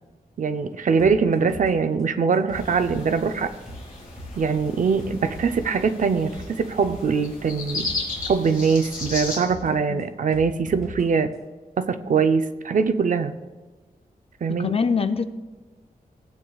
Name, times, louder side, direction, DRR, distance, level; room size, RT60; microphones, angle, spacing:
voice 1, 0.4-3.5 4.4-7.9 8.3-11.3 11.8-13.3 14.4-14.7, right 5 dB, 55° right, 9 dB, 0.5 m, -22 dB
sound 1, 1.0-11.0 11.3-11.4, equal, ahead, 3.4 m, -42 dB
sound 2, 2.5-9.4, left 3 dB, 60° left, 3.3 m, -35 dB
voice 2, 14.5-15.3, left 5 dB, 40° left, 10 dB, 0.4 m, -24 dB
17.0 x 8.5 x 2.3 m, 1.3 s
wide cardioid pair, 140°, 15 cm